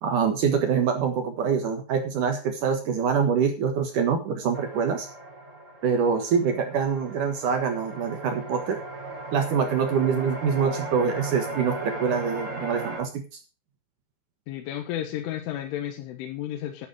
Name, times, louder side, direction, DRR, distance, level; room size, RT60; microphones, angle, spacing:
voice 1, 0.0-5.1 5.8-8.8 9.3-13.2, right 6 dB, 65° right, 5 dB, 2.1 m, -25 dB
sound 1, 4.5-13.0, right 3 dB, 30° right, 1.5 m, -36 dB
voice 2, 14.5-16.9, left 11 dB, 75° left, 5 dB, 3.7 m, -32 dB
12.0 x 8.7 x 4.9 m, 0.33 s
omnidirectional pair, 5.8 m